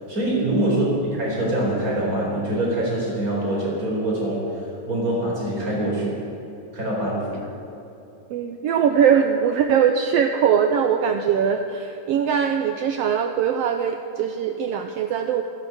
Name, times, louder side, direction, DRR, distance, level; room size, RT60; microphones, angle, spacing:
voice 1, 0.1-6.1 6.7-7.4, right 1 dB, 25° right, -4 dB, 4.7 m, -24 dB
voice 2, 0.7-1.0 8.3-15.4, right 7 dB, 85° right, 6 dB, 1.4 m, -21 dB
14.5 x 10.5 x 8.1 m, 3.0 s
omnidirectional pair, 3.5 m